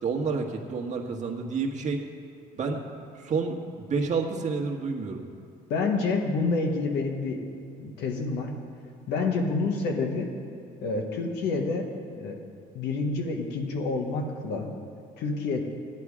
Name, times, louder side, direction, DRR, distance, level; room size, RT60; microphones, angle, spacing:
voice 1, 0.0-2.0 2.6-2.8 3.1-5.2, right 4 dB, 45° right, 2 dB, 1.5 m, -29 dB
voice 2, 5.7-7.5 7.8-8.5 9.1-10.3 10.8-12.4 12.7-14.7 15.2-15.6, left 3 dB, 80° left, 2 dB, 1.5 m, -28 dB
14.5 x 9.9 x 4.9 m, 2.5 s
cardioid pair, 110°, 17 cm